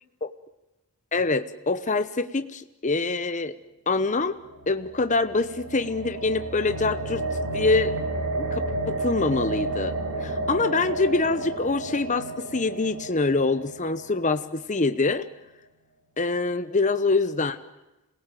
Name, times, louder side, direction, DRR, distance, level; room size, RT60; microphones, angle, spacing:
voice 1, 1.1-3.6 3.9-4.4 4.7-7.2 7.5-7.9 8.3-15.3 16.2-17.6, left 3 dB, 35° left, 10 dB, 1.0 m, -25 dB
sound 1, 4.4-14.6, right 2 dB, 65° right, 3.8 m, -31 dB
27.0 x 18.5 x 9.2 m, 1.0 s
head